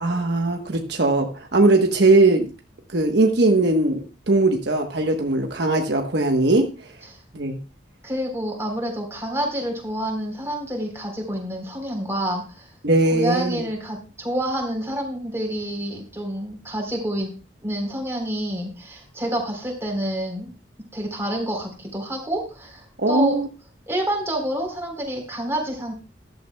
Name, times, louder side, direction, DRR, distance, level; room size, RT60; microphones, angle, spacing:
voice 1, 0.0-2.5 2.9-6.9 7.3-7.6 12.8-13.6 23.0-23.5, right 2 dB, 65° right, 3 dB, 1.2 m, -20 dB
voice 2, 8.0-12.7 13.1-17.3 17.6-20.5 20.9-23.4 23.9-25.9, right 1 dB, 15° right, 1 dB, 3.8 m, -28 dB
14.0 x 12.0 x 2.3 m, 0.34 s
head